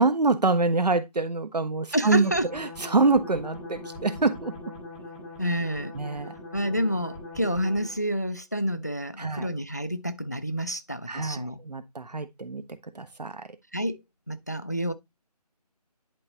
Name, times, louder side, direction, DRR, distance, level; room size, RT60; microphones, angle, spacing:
voice 1, 0.0-4.5 5.9-6.3 9.2-9.5 11.1-12.6 12.9-13.5, right 3 dB, 80° right, 1.2 m, -25 dB
voice 2, 1.9-2.5 5.4-6.0 6.5-11.6 13.7-14.0 14.3-14.9, equal, 25° left, 0.3 m, -29 dB
sound 1, 2.3-8.1, left 2 dB, ahead, 0.7 m, -41 dB
10.5 x 3.9 x 2.9 m
figure-of-eight pair, 165°, 21 cm